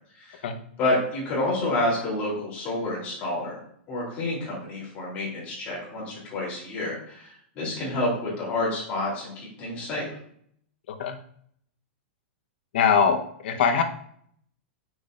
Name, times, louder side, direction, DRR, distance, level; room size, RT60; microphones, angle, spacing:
voice 1, 0.8-3.6 3.9-10.1, left 2 dB, 25° left, -5 dB, 3.1 m, -29 dB
voice 2, 12.7-13.8, left 6 dB, 60° left, 6 dB, 0.9 m, -22 dB
8.1 x 6.2 x 2.5 m, 0.65 s
supercardioid pair, 170°, 6 cm